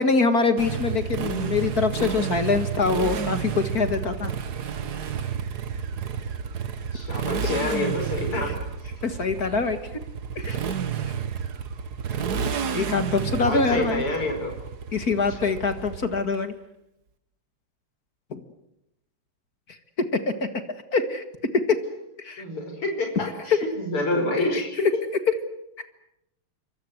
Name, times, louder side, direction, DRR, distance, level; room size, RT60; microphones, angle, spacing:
voice 1, 0.0-4.3 8.4-8.5 9.0-9.8 10.4-10.6 12.7-14.0 14.9-16.5 18.3-18.4 20.0-20.5 20.9-21.2 21.7-21.8 22.2-22.4 24.5-24.6, left 4 dB, 45° left, 9 dB, 2.1 m, -24 dB
Motorcycle, 0.6-16.4, right 7 dB, 50° right, 1.7 m, -30 dB
voice 2, 6.9-8.5 13.2-14.5 15.3-15.5 22.4-25.0, left 2 dB, 90° left, 3 dB, 6.0 m, -28 dB
27.0 x 24.5 x 7.9 m, 0.85 s
omnidirectional pair, 2.4 m